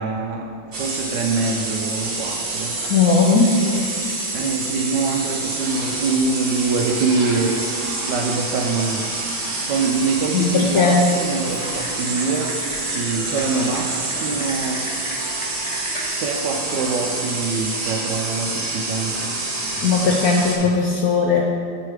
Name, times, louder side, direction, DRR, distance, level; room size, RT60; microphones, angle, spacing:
voice 1, 0.0-2.8 4.3-7.6 8.0-9.1 9.7-12.6 12.9-14.8 16.2-19.3, right 4 dB, 70° right, 3 dB, 1.1 m, -24 dB
sound 1, 0.7-20.6, right 2 dB, 45° right, 1.2 m, -27 dB
voice 2, 2.9-3.5 10.3-11.0 19.8-21.4, left 4 dB, 70° left, -1 dB, 0.9 m, -17 dB
Typing, 11.3-16.1, equal, 20° left, 1.1 m, -35 dB
7.5 x 4.7 x 4.7 m, 2.3 s
omnidirectional pair, 2.1 m